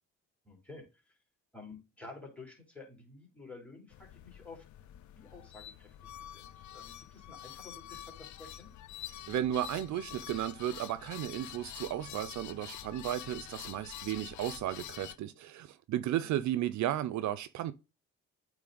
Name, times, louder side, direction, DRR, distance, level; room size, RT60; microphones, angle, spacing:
voice 1, 0.4-1.2 1.5-4.6 5.2-8.7 16.2-16.4, left 3 dB, 5° left, 3.2 m, -51 dB
sound 1, 3.9-15.2, left 12 dB, 70° left, 0.5 m, -47 dB
voice 2, 9.3-17.7, right 12 dB, 70° right, 0.5 m, -34 dB
8.4 x 3.2 x 3.9 m
cardioid pair, 90°, 30 cm